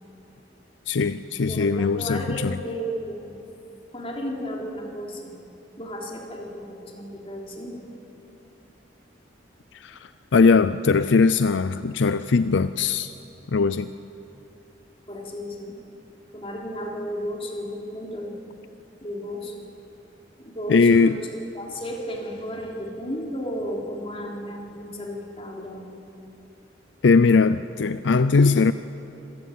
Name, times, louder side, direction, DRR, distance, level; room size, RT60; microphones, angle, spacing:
voice 1, 0.9-2.6 9.7-13.1 13.5-13.9 20.7-21.2 27.0-28.7, left 4 dB, 70° left, 13 dB, 0.5 m, -20 dB
voice 2, 1.5-3.4 3.9-5.4 5.8-7.8 15.1-15.7 16.3-18.4 19.0-19.6 20.4-26.0, equal, 30° left, -1 dB, 3.5 m, -33 dB
26.0 x 15.5 x 9.3 m, 2.9 s
head